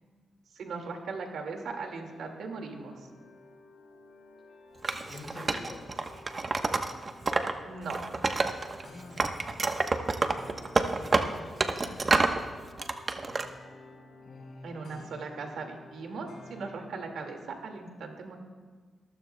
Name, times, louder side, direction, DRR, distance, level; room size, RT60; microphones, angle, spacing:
voice 1, 0.6-3.0 7.6-8.0 14.6-18.4, right 4 dB, 80° right, 3 dB, 2.1 m, -38 dB
sound 1, 1.5-16.9, left 2 dB, 80° left, 3.1 m, -53 dB
Wood, 4.8-7.5 7.8-8.9 9.2-12.4 12.8-13.5, right 3 dB, 45° right, 1.0 m, -28 dB
voice 2, 5.1-5.8 8.8-9.8 10.5-12.5 14.2-15.1, left 2 dB, 50° left, -6 dB, 4.7 m, -48 dB
24.0 x 14.5 x 2.3 m, 1.5 s
supercardioid pair, 45°, 0 cm